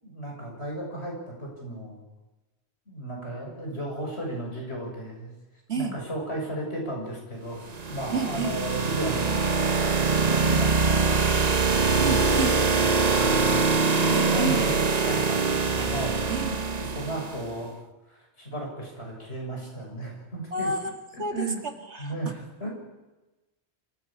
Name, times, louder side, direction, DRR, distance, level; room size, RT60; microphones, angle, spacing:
voice 1, 0.0-2.0 2.9-5.3 5.7-9.5 9.8-13.6 14.0-17.7 18.1-20.7 21.3-21.6 22.0-22.7, right 1 dB, 75° left, 0 dB, 6.9 m, -34 dB
sound 1, 7.6-17.5, right 4 dB, 40° right, 1.1 m, -24 dB
voice 2, 8.1-8.6 12.0-12.5 14.1-14.8 15.8-15.9 16.3-16.5 20.5-21.5 21.9-22.2, right 3 dB, 85° right, 4 dB, 2.5 m, -30 dB
26.0 x 15.0 x 7.3 m, 1.1 s
omnidirectional pair, 1.1 m